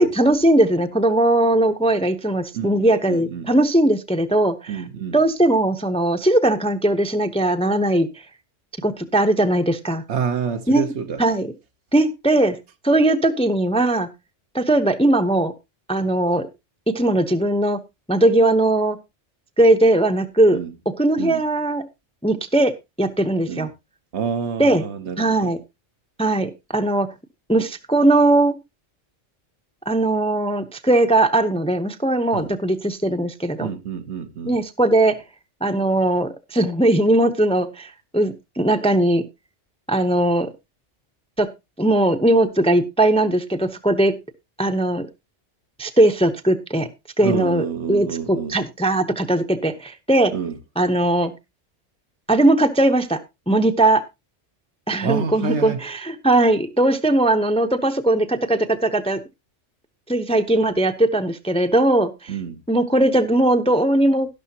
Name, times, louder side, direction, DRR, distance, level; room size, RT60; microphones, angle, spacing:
voice 1, 0.0-4.8 5.1-8.1 8.8-10.0 10.7-10.9 11.2-11.5 11.9-12.6 12.8-14.1 14.5-15.5 15.9-16.5 16.9-17.8 18.1-19.0 19.6-20.6 20.9-21.8 22.2-23.7 24.6-24.8 25.2-25.6 26.2-27.1 27.5-28.6 29.9-33.7 34.4-35.2 35.6-39.2 39.9-40.5 41.4-41.5 41.8-44.2 44.6-45.1 45.8-46.9 47.2-50.3 50.8-51.3 52.3-53.2 53.5-54.0 54.9-59.2 60.1-62.3 62.7-64.3, right 1 dB, 5° left, 0.7 m, -19 dB
voice 2, 2.5-3.5 4.7-5.2 10.1-11.2 20.5-20.7 21.2-21.4 23.5-23.7 24.1-25.5 32.3-32.5 33.6-34.6 47.2-48.6 50.3-50.6 55.0-55.8 62.3-62.6, right 6 dB, 65° right, 1.2 m, -28 dB
12.0 x 12.0 x 2.8 m
omnidirectional pair, 1.2 m